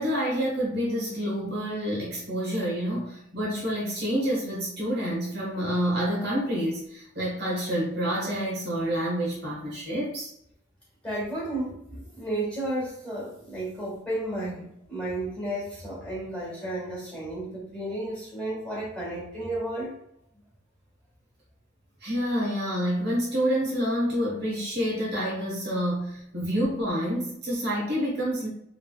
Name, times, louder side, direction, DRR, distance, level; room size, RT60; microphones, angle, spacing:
voice 1, 0.0-10.3 22.0-28.5, equal, 50° right, -4 dB, 1.2 m, -28 dB
voice 2, 11.0-19.9, right 1 dB, 5° left, -7 dB, 1.5 m, -33 dB
3.4 x 3.1 x 2.3 m, 0.73 s
head